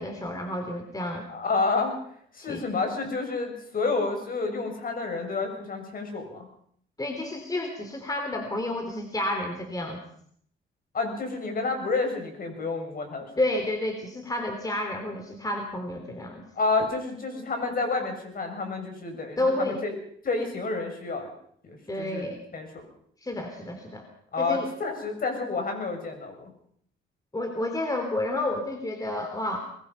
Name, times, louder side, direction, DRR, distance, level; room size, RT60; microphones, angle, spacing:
voice 1, 0.0-1.3 2.4-2.7 7.0-10.0 13.4-16.4 19.4-19.8 21.9-22.4 23.2-24.0 24.4-24.7 27.3-29.6, left 1 dB, 20° left, 5 dB, 3.5 m, -30 dB
voice 2, 1.3-2.0 2.3-6.5 10.9-13.3 16.5-19.9 20.2-21.3 21.6-22.3 22.5-22.8 24.3-26.5, left 3 dB, 45° left, 4 dB, 6.9 m, -29 dB
22.5 x 21.0 x 5.6 m, 0.64 s
cardioid pair, 90°, 20 cm